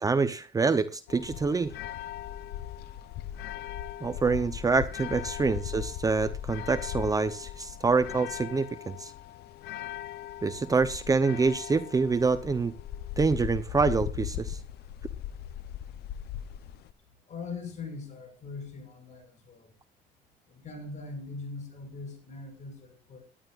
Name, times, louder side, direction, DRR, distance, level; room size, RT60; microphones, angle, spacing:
voice 1, 0.0-1.7 4.0-9.1 10.4-12.7 13.2-14.6, right 4 dB, 20° right, 13 dB, 0.7 m, -26 dB
sound 1, 1.1-16.9, left 11 dB, 75° left, 0.7 m, -39 dB
voice 2, 17.3-19.7 20.5-23.2, left 4 dB, 45° left, 7 dB, 5.6 m, -41 dB
18.5 x 11.0 x 2.5 m, 0.34 s
cardioid pair, 110°, 17 cm